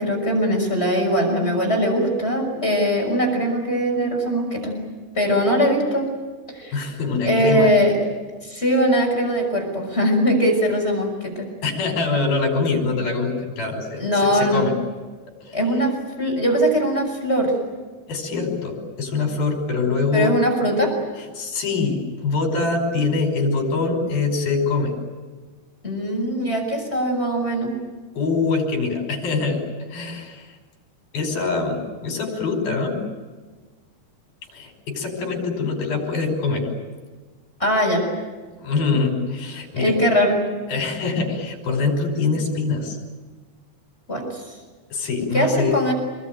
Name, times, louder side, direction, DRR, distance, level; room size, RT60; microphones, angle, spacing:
voice 1, 0.0-4.8 5.1-6.1 6.5-6.8 7.2-7.9 8.4-11.5 14.0-14.7 15.5-15.9 16.2-17.5 20.1-20.9 25.8-27.7 37.6-38.0 39.8-40.4 44.1-44.6 45.3-45.9, equal, 15° left, 1 dB, 6.1 m, -21 dB
voice 2, 6.7-7.7 11.6-14.7 15.5-15.6 18.1-20.4 21.4-24.9 28.2-29.6 29.9-30.5 31.1-33.0 34.5-36.6 38.6-40.0 40.7-43.0 44.9-45.8, left 4 dB, 65° left, 3 dB, 7.2 m, -24 dB
27.5 x 22.0 x 9.2 m, 1.4 s
omnidirectional pair, 4.5 m